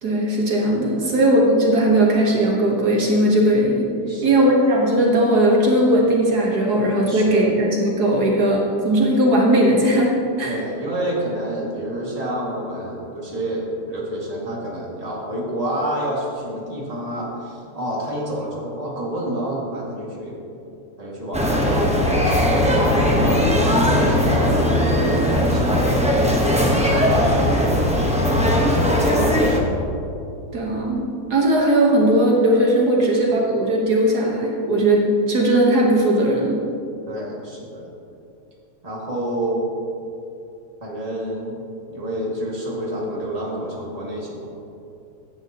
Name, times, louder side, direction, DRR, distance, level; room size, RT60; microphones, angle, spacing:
voice 1, 0.0-3.9 4.2-10.1 10.4-10.6 30.5-36.6, right 1 dB, 70° right, -1 dB, 1.8 m, -18 dB
voice 2, 0.8-1.2 4.1-4.3 7.1-7.4 10.4-20.4 21.0-29.6 37.1-37.9 38.8-39.7 40.8-41.6 41.9-44.5, right 1 dB, 20° right, -4 dB, 2.2 m, -29 dB
sound 1, 21.3-29.6, left 1 dB, 5° right, 0.9 m, -18 dB
16.0 x 10.0 x 3.0 m, 2.7 s
omnidirectional pair, 1.7 m